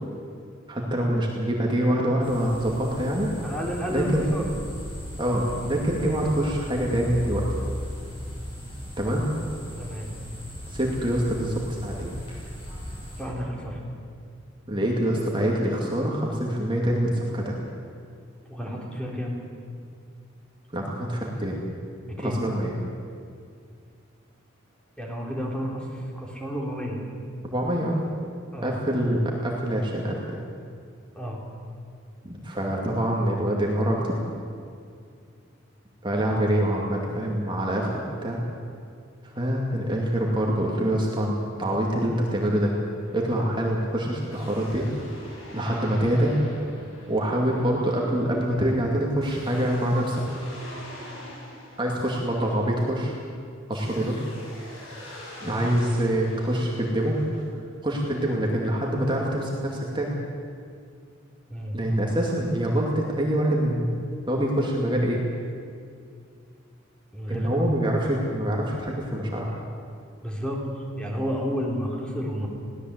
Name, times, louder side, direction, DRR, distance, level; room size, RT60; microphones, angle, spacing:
voice 1, 0.7-3.3 3.9-4.2 5.2-7.5 9.0-9.3 10.7-12.1 14.7-17.6 20.7-21.6 22.2-22.7 27.5-28.0 28.6-30.4 32.2-34.2 36.0-38.4 39.2-42.7 43.1-44.9 45.5-46.4 47.1-50.2 51.8-53.1 53.7-54.2 55.4-57.2 57.8-60.1 61.7-65.2 67.3-69.5, right 1 dB, 25° right, -2 dB, 2.4 m, -25 dB
sound 1, 2.2-13.2, equal, 25° left, 7.4 m, -37 dB
voice 2, 3.4-4.5 9.8-10.1 13.2-13.8 18.5-19.4 22.1-22.4 25.0-27.0 28.5-28.8 31.1-31.4 36.3-36.4 61.5-61.8 67.1-67.5 70.2-70.7 71.0-72.5, equal, 5° left, -1 dB, 3.6 m, -31 dB
sound 2, 43.0-53.1 53.7-57.4, left 1 dB, 85° left, 7.1 m, -44 dB
22.0 x 17.0 x 8.1 m, 2.3 s
head